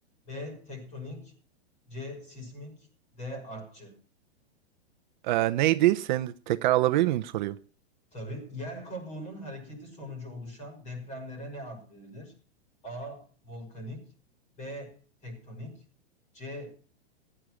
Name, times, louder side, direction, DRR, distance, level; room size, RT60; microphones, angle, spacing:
voice 1, 0.3-1.3 1.9-2.9 3.1-4.0 8.1-12.3 12.8-14.1 14.6-15.8 16.3-16.7, left 1 dB, 20° left, 5.8 m, -41 dB
voice 2, 5.2-7.5, right 15 dB, 45° right, 0.7 m, -24 dB
15.5 x 10.0 x 6.2 m
supercardioid pair, 150°, 32 cm